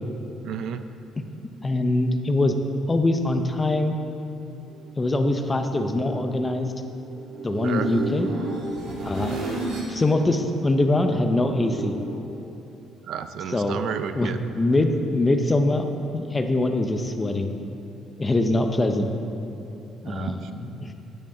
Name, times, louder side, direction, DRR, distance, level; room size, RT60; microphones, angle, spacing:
voice 1, 0.4-0.8 7.6-7.9 13.1-14.4 20.1-20.5, right 8 dB, 60° right, 10 dB, 0.5 m, -31 dB
voice 2, 1.6-2.5 2.9-3.9 5.0-6.7 7.4-8.3 9.0-9.4 9.9-12.0 13.5-13.8 14.2-14.3 14.6-15.9 16.1-17.5 18.2-19.1 20.0-20.9, left 2 dB, 15° left, 6 dB, 0.6 m, -23 dB
sound 1, 4.7-10.0 10.3-12.2, right 2 dB, 80° right, 2.4 m, -33 dB
10.0 x 10.0 x 3.8 m, 2.9 s
cardioid pair, 155°, 0 cm